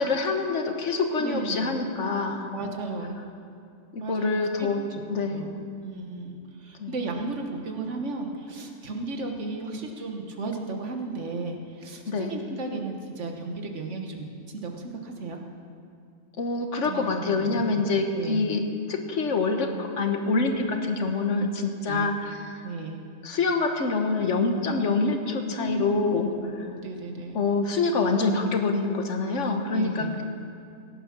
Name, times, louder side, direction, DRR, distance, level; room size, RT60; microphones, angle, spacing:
voice 1, 0.0-2.5 3.9-4.8 5.1-5.4 6.8-6.9 12.1-12.4 16.4-22.7 23.2-26.7 27.3-30.1, left 3 dB, 80° left, 5 dB, 1.5 m, -26 dB
voice 2, 1.2-1.7 2.5-3.2 4.0-4.3 4.6-4.7 5.3-5.5 5.8-15.4 16.8-17.5 17.7-17.9 18.1-18.5 20.5-20.7 21.9-22.1 22.6-23.0 24.6-24.8 25.6-27.4 29.7-30.2, right 3 dB, 75° right, 3 dB, 1.7 m, -34 dB
16.5 x 9.9 x 6.0 m, 2.4 s
omnidirectional pair, 1.2 m